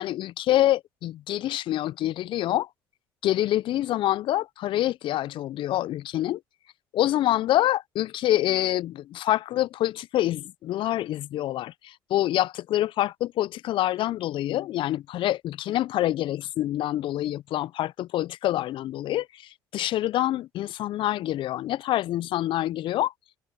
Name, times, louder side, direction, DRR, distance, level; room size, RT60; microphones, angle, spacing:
voice 1, 0.0-2.7 3.2-6.4 6.9-23.1, left 14 dB, 55° left, 0.6 m, -26 dB
open air
hypercardioid pair, 60°, 10 cm